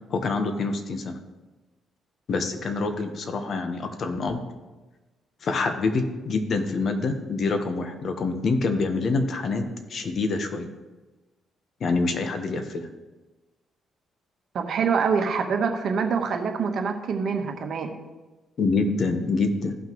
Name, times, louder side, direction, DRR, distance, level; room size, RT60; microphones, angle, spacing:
voice 1, 0.1-1.2 2.3-4.4 5.4-9.6 9.9-10.7 11.8-12.9 18.6-19.8, left 3 dB, 55° left, 6 dB, 1.2 m, -26 dB
voice 2, 14.5-17.9, right 5 dB, 60° right, 5 dB, 1.2 m, -25 dB
15.5 x 5.9 x 3.1 m, 1.2 s
cardioid pair, 90°, 0 cm